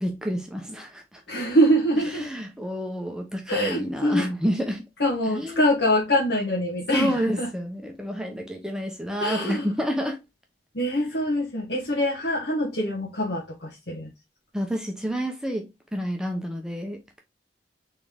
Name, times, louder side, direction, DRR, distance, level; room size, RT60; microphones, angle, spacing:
voice 1, 0.0-1.2 2.0-4.9 5.3-5.8 6.9-10.2 14.5-17.2, equal, 5° right, 0.8 m, -29 dB
voice 2, 1.3-2.3 3.5-4.2 5.0-7.1 7.4-7.5 9.2-9.6 10.7-14.1, equal, 70° left, 1.6 m, -24 dB
4.2 x 3.6 x 3.5 m
head